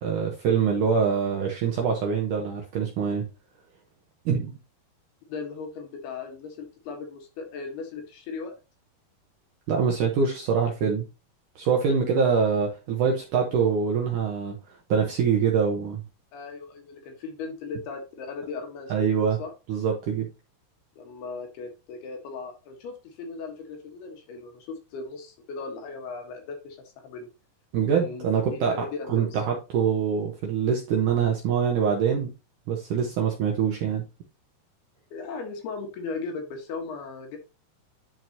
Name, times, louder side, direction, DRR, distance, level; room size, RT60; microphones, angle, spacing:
voice 1, 0.0-3.3 4.3-4.6 9.7-11.1 11.6-14.6 14.9-16.0 18.9-19.4 19.7-20.3 27.7-32.3 32.7-34.0, right 6 dB, 70° right, 0 dB, 2.0 m, -24 dB
voice 2, 5.3-8.5 16.3-18.9 19.4-19.5 21.0-26.8 27.0-27.3 27.9-29.4 35.1-37.4, left 4 dB, 70° left, 3 dB, 3.2 m, -37 dB
11.0 x 4.6 x 2.8 m, 0.29 s
omnidirectional pair, 5.0 m